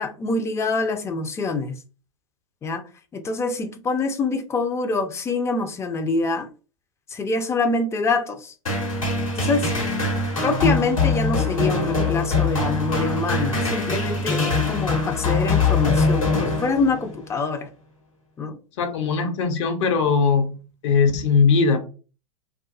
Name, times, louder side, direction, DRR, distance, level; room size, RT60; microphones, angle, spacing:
voice 1, 0.0-1.8 2.6-2.8 3.1-6.5 7.1-8.5 9.4-9.7 10.4-17.7 18.4-18.6, left 3 dB, 15° left, 0.4 m, -25 dB
sound 1, 8.7-17.2, left 3 dB, 85° left, 1.2 m, -23 dB
voice 2, 18.8-20.5 20.8-21.8, left 5 dB, 60° left, 0.7 m, -19 dB
2.5 x 2.3 x 2.4 m
figure-of-eight pair, 90°, 17 cm